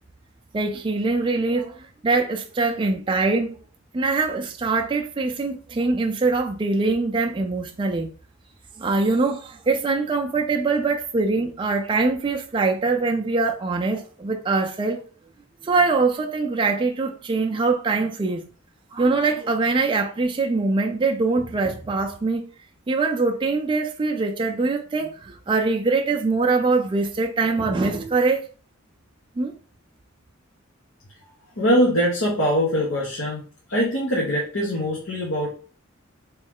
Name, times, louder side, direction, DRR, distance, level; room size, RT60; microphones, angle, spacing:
voice 1, 0.5-3.6 3.9-8.1 8.8-15.0 15.6-18.5 18.9-22.5 22.9-28.4 29.4-29.5, right 3 dB, 25° right, 0.4 m, -23 dB
voice 2, 31.6-33.4 33.7-35.5, equal, 85° left, 1.1 m, -22 dB
3.2 x 3.1 x 3.5 m
head